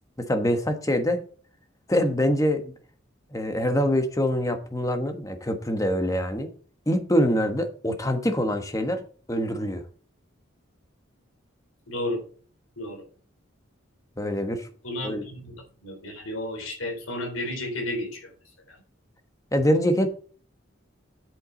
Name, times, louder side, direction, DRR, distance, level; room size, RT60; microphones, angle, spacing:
voice 1, 0.2-1.2 1.9-2.7 3.3-6.5 6.9-9.0 9.3-9.8 14.2-14.7 15.0-15.2 19.5-20.1, equal, 15° left, 7 dB, 1.3 m, -24 dB
voice 2, 11.9-12.2 12.8-13.0 14.8-18.3 18.7-18.8, left 1 dB, 90° left, 1 dB, 3.9 m, -32 dB
8.3 x 7.9 x 4.0 m, 0.42 s
head